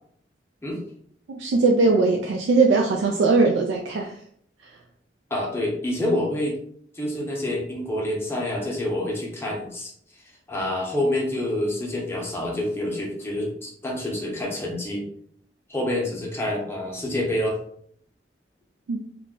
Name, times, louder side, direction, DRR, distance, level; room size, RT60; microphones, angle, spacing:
voice 1, 1.3-4.2 4.6-4.7 18.9-19.0, right 3 dB, 90° right, 1 dB, 0.3 m, -20 dB
voice 2, 5.3-6.6 6.9-9.9 10.5-15.0 15.7-17.6, left 1 dB, 15° left, -2 dB, 0.7 m, -27 dB
2.3 x 2.1 x 3.6 m, 0.65 s
head